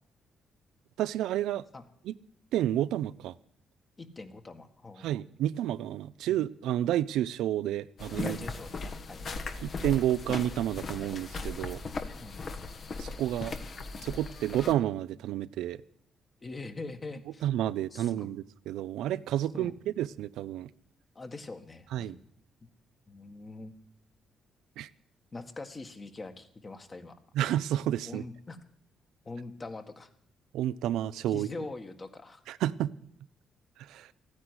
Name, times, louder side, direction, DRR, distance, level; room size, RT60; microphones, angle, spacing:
voice 1, 1.0-1.6 2.1-2.2 2.5-3.3 5.0-8.4 9.6-11.8 13.0-13.5 14.0-15.8 17.4-20.7 21.9-22.1 24.8-24.9 27.3-28.2 30.5-31.5 32.5-32.9 33.8-34.1, right 12 dB, 85° right, 15 dB, 0.5 m, -30 dB
voice 2, 4.0-5.1 6.2-6.4 8.2-9.8 12.2-12.6 16.4-17.4 17.9-18.3 19.5-19.7 21.1-22.2 23.1-23.7 25.3-27.1 28.0-28.6 29.2-30.1 31.3-32.4, left 3 dB, 30° left, 7 dB, 1.8 m, -43 dB
sound 1, 8.0-14.7, left 3 dB, 50° left, 1.4 m, -38 dB
14.0 x 9.7 x 9.8 m, 0.66 s
cardioid pair, 90°, 0 cm